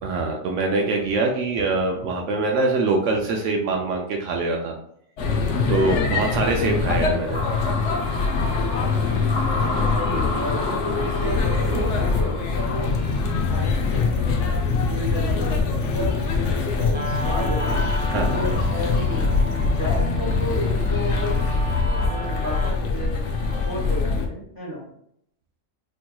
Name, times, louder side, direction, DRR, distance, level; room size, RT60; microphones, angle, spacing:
voice 1, 0.0-4.7 5.7-7.5 18.1-18.4, right 3 dB, 70° right, 2 dB, 0.9 m, -23 dB
sound 1, 5.2-24.3, left 4 dB, 65° left, 0.9 m, -23 dB
sound 2, 7.3-14.5, left 1 dB, 35° left, 1.2 m, -33 dB
voice 2, 9.7-12.9 13.5-16.1 16.5-17.8 18.2-21.3 22.0-24.8, equal, 15° left, -7 dB, 1.4 m, -32 dB
Guitar, 16.9-23.9, right 1 dB, 45° right, 0.3 m, -34 dB
4.5 x 2.9 x 2.2 m, 0.69 s
omnidirectional pair, 1.4 m